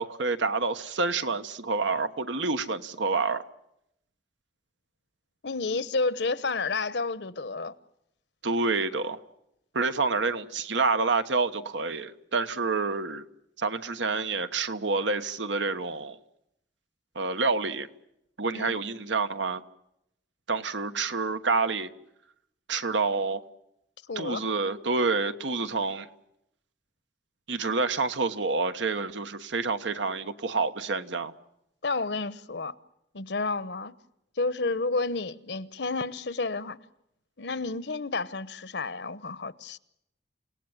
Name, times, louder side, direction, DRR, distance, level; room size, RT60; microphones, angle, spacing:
voice 1, 0.0-3.4 8.4-9.2 9.7-13.2 13.6-16.2 17.1-17.9 18.4-19.6 20.5-21.9 22.7-23.4 24.1-26.1 27.5-31.3, right 4 dB, 90° right, 1.3 m, -28 dB
voice 2, 5.4-7.7 18.5-18.8 24.1-24.5 31.8-32.7 33.1-33.9 34.4-36.8 37.4-39.8, left 3 dB, 70° left, 1.0 m, -30 dB
29.0 x 18.0 x 9.1 m
head